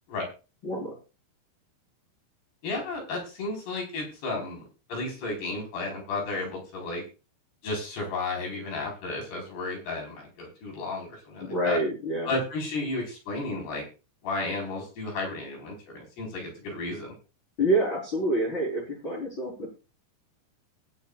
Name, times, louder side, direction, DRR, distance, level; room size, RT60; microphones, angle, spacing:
voice 1, 0.6-0.9 11.4-12.4 17.6-19.7, right 1 dB, 25° left, -4 dB, 4.6 m, -27 dB
voice 2, 2.6-4.6 4.9-7.0 7.6-11.8 12.3-13.9 14.2-17.1, left 2 dB, 55° left, 1 dB, 6.4 m, -33 dB
20.5 x 8.6 x 2.5 m, 0.32 s
omnidirectional pair, 5.7 m